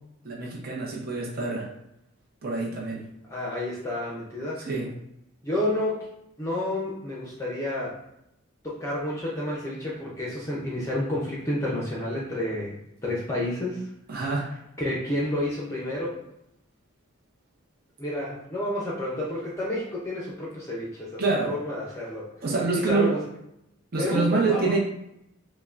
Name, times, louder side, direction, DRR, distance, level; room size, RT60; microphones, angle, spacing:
voice 1, 0.2-1.7 2.4-3.1 4.6-4.9 14.1-14.5 21.2-21.5 22.4-23.1 23.9-24.8, right 3 dB, 45° right, -3 dB, 0.7 m, -26 dB
voice 2, 3.3-4.6 5.4-6.1 6.4-8.0 8.6-13.9 14.8-16.2 18.0-22.3 22.7-23.2 24.0-24.7, left 1 dB, 15° left, -5 dB, 0.6 m, -30 dB
5.6 x 2.2 x 2.5 m, 0.82 s
head